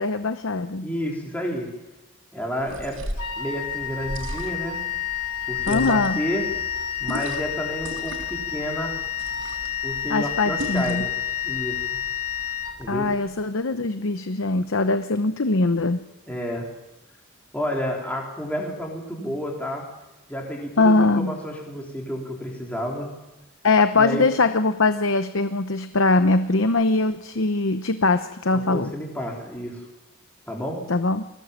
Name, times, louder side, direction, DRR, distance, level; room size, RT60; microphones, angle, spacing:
voice 1, 0.0-0.9 5.7-6.2 10.1-11.0 12.9-16.0 20.8-21.4 23.6-28.9 30.9-31.3, left 3 dB, 65° left, 10 dB, 0.8 m, -21 dB
voice 2, 0.8-1.7 2.3-3.0 3.4-4.8 5.5-6.5 7.0-9.0 9.8-11.1 11.4-11.8 12.8-13.1 16.3-16.7 17.5-19.9 20.3-23.1 24.0-24.3 28.5-29.9 30.5-30.9, equal, 5° left, -2 dB, 3.8 m, -30 dB
sound 1, 2.6-3.3 4.0-4.7 5.6-6.2 7.0-7.5 7.8-8.4 9.2-9.7 10.6-11.1, equal, 65° right, 4.6 m, -35 dB
Wind instrument woodwind instrument, 3.2-13.3, left 9 dB, 85° left, 3.4 m, -30 dB
22.5 x 17.5 x 7.4 m, 1.1 s
head